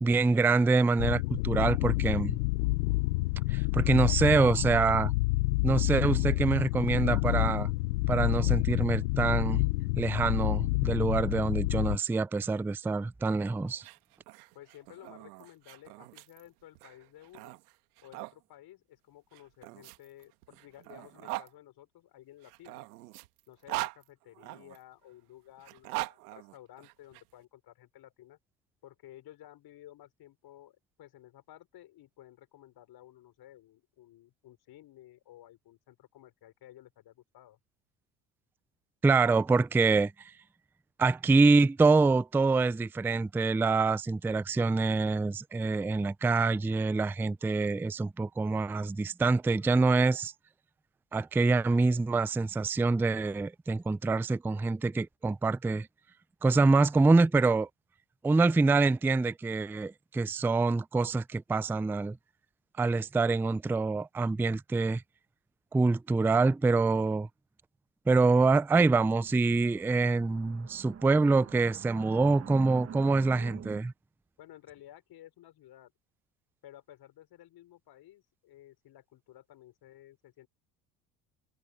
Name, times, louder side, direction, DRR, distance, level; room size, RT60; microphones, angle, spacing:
voice 1, 0.0-2.4 3.5-5.1 5.6-7.7 8.1-9.6 10.0-13.8 39.0-40.1 41.0-50.3 51.1-55.9 56.4-57.7 58.2-62.2 62.8-65.0 65.7-67.3 68.1-73.9, right 3 dB, 5° right, 0.4 m, -25 dB
sound 1, 1.0-12.0, left 22 dB, 75° left, 0.7 m, -28 dB
sound 2, 13.7-18.3 19.3-21.5 22.4-24.8 25.6-27.2, right 22 dB, 75° right, 1.9 m, -41 dB
voice 2, 14.5-17.6 18.0-22.9 23.5-28.4 28.8-37.6 74.4-75.9 76.6-80.5, left 13 dB, 55° left, 5.2 m, -54 dB
sound 3, 68.9-73.8, right 8 dB, 30° right, 1.3 m, -47 dB
hypercardioid pair, 70°, 45 cm